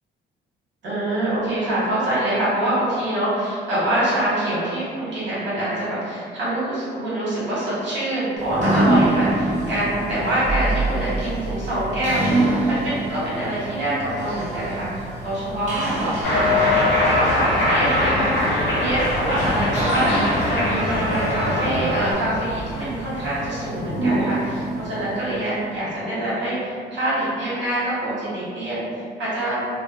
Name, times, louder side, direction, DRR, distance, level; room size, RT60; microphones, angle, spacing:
voice 1, 0.8-20.2 20.5-28.8 29.2-29.6, right 1 dB, 65° right, -9 dB, 1.3 m, -25 dB
sound 1, 8.4-26.2, right 2 dB, 35° right, 1.1 m, -27 dB
sound 2, 14.6-23.5, equal, 35° left, 0.8 m, -37 dB
Cheering, 16.2-22.1, left 1 dB, 65° left, 0.8 m, -21 dB
2.5 x 2.1 x 2.5 m, 2.1 s
cardioid pair, 90°, 20 cm